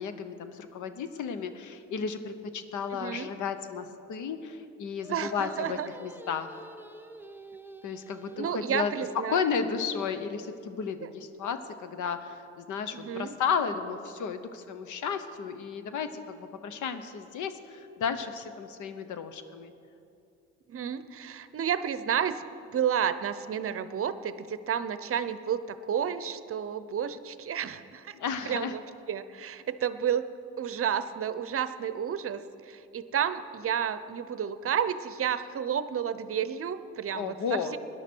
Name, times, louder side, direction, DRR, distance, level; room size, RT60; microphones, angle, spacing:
voice 1, 0.0-6.6 7.8-8.9 9.3-19.7 28.1-28.7 37.1-37.8, left 6 dB, 80° left, 10 dB, 1.0 m, -33 dB
voice 2, 2.9-3.3 5.1-5.9 8.4-9.5 11.0-11.1 12.9-13.4 20.7-22.4 22.7-28.2 28.4-28.8 29.1-30.3 30.6-37.8, right 8 dB, 50° right, 13 dB, 0.7 m, -31 dB
Singing, 5.0-10.4, right 3 dB, 5° right, 0.7 m, -48 dB
18.0 x 11.0 x 4.5 m, 2.6 s
cardioid pair, 90°, 30 cm